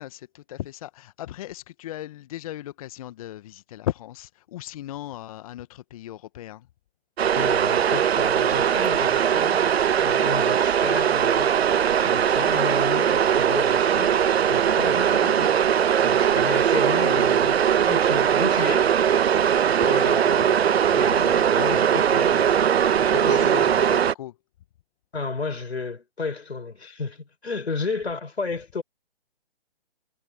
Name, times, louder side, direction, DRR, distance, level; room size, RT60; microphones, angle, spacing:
voice 1, 0.0-6.7 17.8-17.9 19.8-20.3 23.0-24.4, left 13 dB, 35° left, 1.2 m, -37 dB
sound 1, 7.2-24.1, right 8 dB, 75° right, 0.6 m, -20 dB
voice 2, 7.3-14.2 14.5-15.6 16.0-17.6 17.9-19.3 19.9-20.6 20.9-22.8 23.2-23.5 25.1-28.8, left 4 dB, 80° left, 4.7 m, -33 dB
figure-of-eight pair, 140°, 32 cm